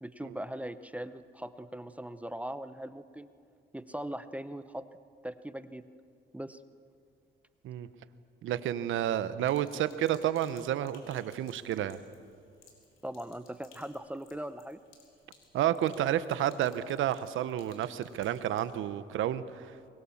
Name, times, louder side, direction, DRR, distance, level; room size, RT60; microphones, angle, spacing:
voice 1, 0.0-3.3 3.7-4.8 5.2-5.8 6.3-6.6 13.0-14.8, right 1 dB, 5° right, 11 dB, 0.9 m, -40 dB
voice 2, 8.4-12.0 15.5-19.7, right 11 dB, 80° right, 13 dB, 1.0 m, -30 dB
Sink (filling or washing), 9.4-18.8, left 5 dB, 85° left, 4.7 m, -61 dB
24.0 x 21.5 x 7.3 m, 2.3 s
cardioid pair, 90°, 20 cm